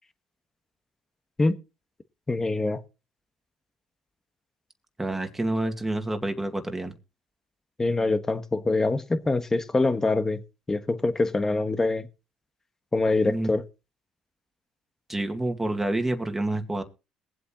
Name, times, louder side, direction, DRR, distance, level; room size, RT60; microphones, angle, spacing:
voice 1, 2.3-2.8 7.8-10.4 10.7-12.1 12.9-13.6, left 2 dB, 20° left, 1.5 m, -24 dB
voice 2, 5.0-6.9 13.3-13.5 15.1-16.8, right 1 dB, 10° right, 2.3 m, -28 dB
21.5 x 8.0 x 3.0 m
supercardioid pair, 80°, 2 cm